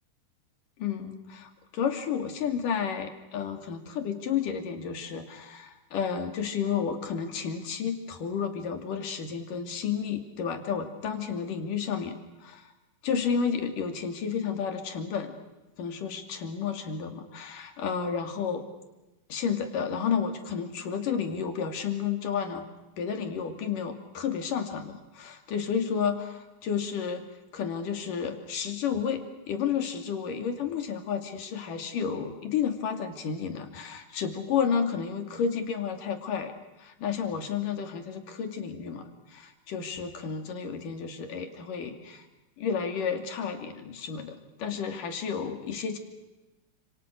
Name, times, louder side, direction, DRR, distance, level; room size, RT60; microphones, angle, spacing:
voice 1, 0.8-12.7 13.0-15.3 15.8-18.6 19.3-22.7 23.0-27.2 27.5-36.5 36.8-42.3 42.6-46.0, left 7 dB, 90° left, 5 dB, 4.2 m, -31 dB
30.0 x 27.5 x 6.5 m, 1.1 s
omnidirectional pair, 3.7 m